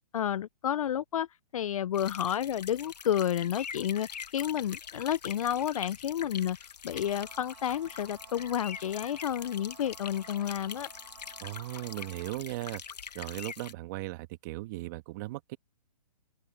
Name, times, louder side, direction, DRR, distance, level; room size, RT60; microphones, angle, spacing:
voice 1, 0.1-1.3 1.5-4.1 4.3-6.6 6.8-10.9, left 10 dB, 60° left, 0.4 m, -30 dB
sound 1, 1.9-13.7, left 7 dB, 85° left, 1.3 m, -44 dB
sound 2, 6.9-12.3, right 11 dB, 45° right, 5.5 m, -54 dB
voice 2, 11.4-12.8 13.1-15.6, right 18 dB, 30° right, 1.6 m, -37 dB
open air
hypercardioid pair, 160°, 20 cm